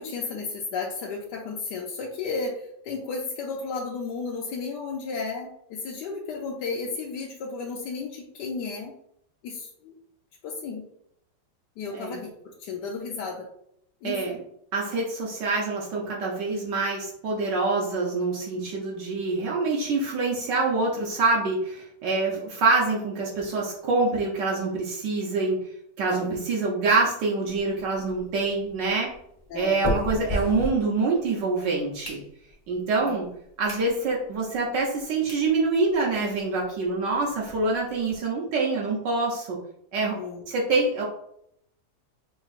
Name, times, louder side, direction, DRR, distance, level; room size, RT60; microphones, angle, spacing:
voice 1, 0.0-8.9 9.4-9.9 10.4-10.8 11.8-13.5 14.0-14.4 22.3-22.5 26.1-26.4 29.5-29.9 30.4-30.5 33.0-33.2 40.1-40.5, left 4 dB, 75° left, -2 dB, 1.2 m, -33 dB
voice 2, 14.0-14.4 14.7-25.6 26.0-29.1 29.5-32.2 32.7-33.3 33.6-39.6 39.9-40.2 40.5-41.1, right 3 dB, 75° right, -3 dB, 1.4 m, -25 dB
sound 1, 27.5-31.4 31.8-32.7 33.2-33.3 33.6-33.9 34.3-34.4 35.0-35.1 35.3-35.5 35.9-36.0 36.2-36.3 36.6-36.7 37.0-38.2, left 1 dB, 20° left, 0.7 m, -34 dB
5.2 x 3.0 x 2.4 m, 0.72 s
omnidirectional pair, 2.0 m